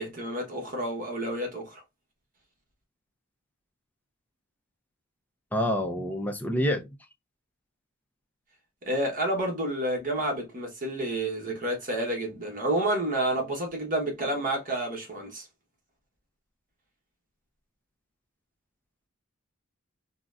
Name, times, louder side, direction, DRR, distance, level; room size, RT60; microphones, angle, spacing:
voice 1, 0.0-1.8 8.8-15.5, right 1 dB, 40° right, 1.0 m, -29 dB
voice 2, 5.5-6.9, equal, 10° left, 0.5 m, -27 dB
3.8 x 2.1 x 2.4 m
head